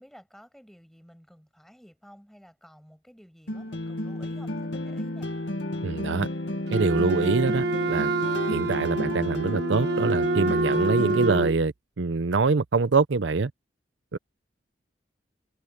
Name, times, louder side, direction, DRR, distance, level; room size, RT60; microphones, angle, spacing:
voice 1, 0.0-5.3, equal, ahead, 6.7 m, -52 dB
sound 1, 3.5-11.5, left 1 dB, 80° left, 2.1 m, -32 dB
voice 2, 5.8-6.3 6.7-8.1 8.5-13.5 14.1-14.2, right 4 dB, 80° right, 0.7 m, -25 dB
Wind instrument woodwind instrument, 6.7-11.6, right 3 dB, 60° right, 1.2 m, -27 dB
head